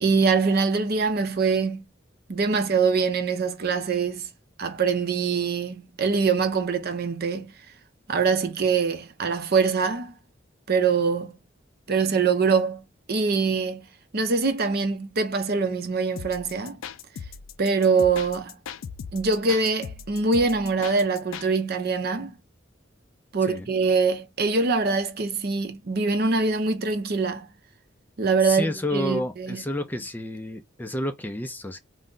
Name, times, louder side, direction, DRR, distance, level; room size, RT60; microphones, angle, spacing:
voice 1, 0.0-1.8 2.3-4.3 4.6-7.5 8.1-10.1 10.7-11.4 11.9-12.8 13.1-13.8 14.1-16.8 17.6-18.6 19.1-22.3 23.3-27.5 28.2-29.6, right 4 dB, 55° right, 0.6 m, -24 dB
sound 1, 16.2-21.5, left 7 dB, 90° left, 0.4 m, -38 dB
voice 2, 28.4-31.8, left 1 dB, 10° left, 0.3 m, -30 dB
2.6 x 2.2 x 3.6 m
head